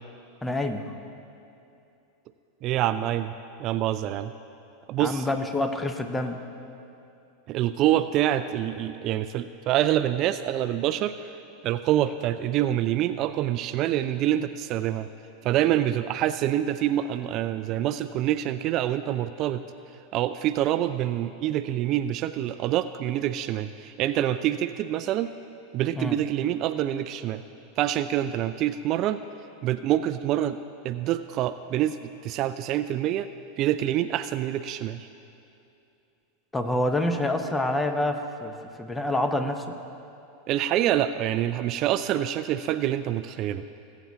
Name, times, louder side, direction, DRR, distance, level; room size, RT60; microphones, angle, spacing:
voice 1, 0.4-0.8 5.0-6.4 26.0-26.2 36.5-39.6, left 1 dB, 10° left, 7 dB, 0.9 m, -27 dB
voice 2, 2.6-3.3 3.6-4.3 4.9-5.3 7.5-11.3 11.6-15.1 15.4-19.6 20.1-25.3 25.7-27.4 27.8-29.2 29.6-30.6 30.8-33.3 33.6-35.1 40.5-43.7, right 12 dB, 45° right, 12 dB, 0.3 m, -26 dB
20.0 x 8.1 x 2.8 m, 2.8 s
hypercardioid pair, 95°, 0 cm